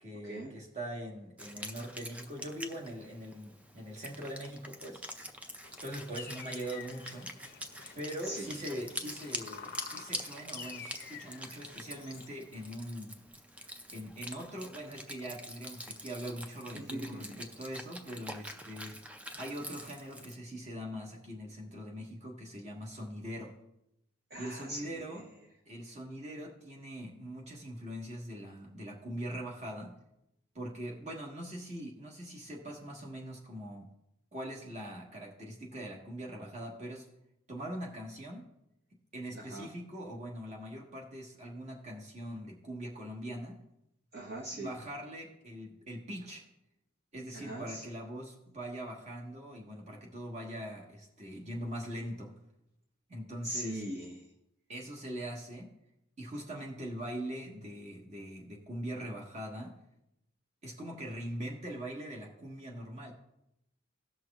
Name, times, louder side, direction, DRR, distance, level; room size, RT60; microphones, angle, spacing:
voice 1, 0.0-5.0 5.8-7.3 7.9-13.1 13.9-18.9 19.4-23.5 24.4-25.2 25.7-29.9 30.5-33.9 34.3-37.1 37.5-38.4 39.1-43.6 44.5-46.4 47.1-52.3 53.1-53.8 54.7-55.7 56.2-59.7 60.6-63.1, equal, 35° right, -2 dB, 1.5 m, -42 dB
Wind instrument woodwind instrument, 1.4-20.4, equal, 5° right, 0.3 m, -45 dB
sound 1, 5.6-12.3, left 6 dB, 45° left, 0.5 m, -50 dB
voice 2, 16.7-17.4 24.3-25.0 39.3-39.7 44.1-44.7 47.3-47.8 53.4-54.2, right 1 dB, 50° right, -2 dB, 1.1 m, -40 dB
18.0 x 6.1 x 2.4 m, 0.84 s
head